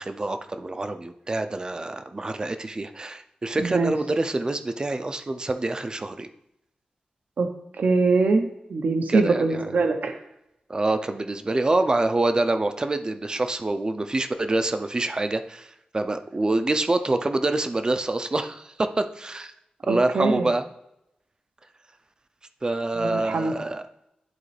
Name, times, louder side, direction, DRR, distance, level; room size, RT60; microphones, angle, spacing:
voice 1, 0.0-6.3 9.1-9.8 10.7-19.5 19.8-20.6 22.6-23.8, right 2 dB, 30° right, 8 dB, 0.5 m, -26 dB
voice 2, 3.6-3.9 7.4-7.5 7.8-10.2 19.9-20.5 23.0-23.5, right 3 dB, 80° right, 6 dB, 0.7 m, -23 dB
11.0 x 4.1 x 3.3 m, 0.85 s
wide cardioid pair, 105°, 3 cm